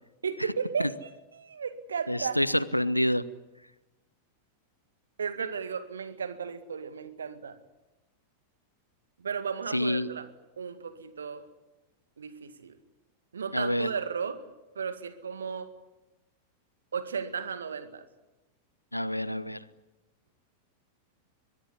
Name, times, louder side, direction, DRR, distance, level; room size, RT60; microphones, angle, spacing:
voice 1, 0.2-2.4 5.2-7.6 9.2-10.3 10.6-11.5 12.2-12.8 13.3-14.4 14.8-15.7 16.9-18.0, right 6 dB, 70° right, 11 dB, 2.0 m, -34 dB
voice 2, 2.1-3.2 9.7-10.1 13.5-13.9 18.9-19.6, equal, 90° left, 18 dB, 0.9 m, -27 dB
22.5 x 22.0 x 9.8 m, 1.0 s
figure-of-eight pair, 90°, 0 cm